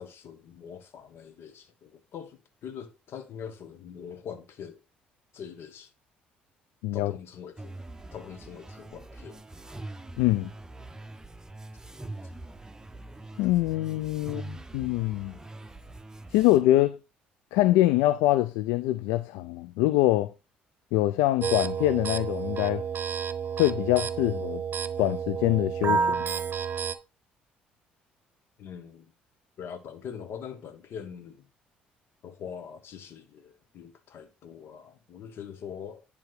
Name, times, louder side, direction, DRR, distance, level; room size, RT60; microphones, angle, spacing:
voice 1, 0.0-4.8 5.3-5.9 6.9-7.7 8.1-9.4 14.2-14.6 28.6-29.1 29.6-31.5 32.2-36.1, left 7 dB, 60° left, 1.5 m, -43 dB
sound 1, 7.6-16.6, right 2 dB, 15° right, 0.9 m, -43 dB
voice 2, 10.2-10.5 13.4-14.4 14.7-15.3 16.3-17.0 17.5-20.3 20.9-22.8 23.6-24.6 25.0-26.2, left 16 dB, 75° left, 0.4 m, -24 dB
sound 2, 21.4-27.0, right 6 dB, 40° right, 0.9 m, -30 dB
10.5 x 3.6 x 4.8 m
hypercardioid pair, 55°, 5 cm